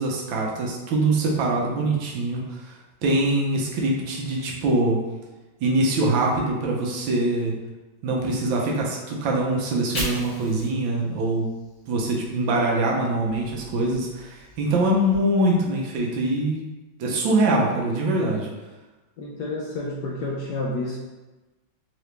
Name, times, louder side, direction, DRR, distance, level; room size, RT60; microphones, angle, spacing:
voice 1, 0.0-2.7 3.0-5.0 5.6-7.5 8.0-11.5 11.9-16.7 17.0-18.5, right 2 dB, 75° right, -2 dB, 1.4 m, -23 dB
Fire, 9.6-12.7 13.1-15.1, equal, 40° left, 1.1 m, -39 dB
voice 2, 19.2-21.0, left 2 dB, 75° left, -4 dB, 1.0 m, -29 dB
3.8 x 2.9 x 3.2 m, 1.1 s
omnidirectional pair, 2.2 m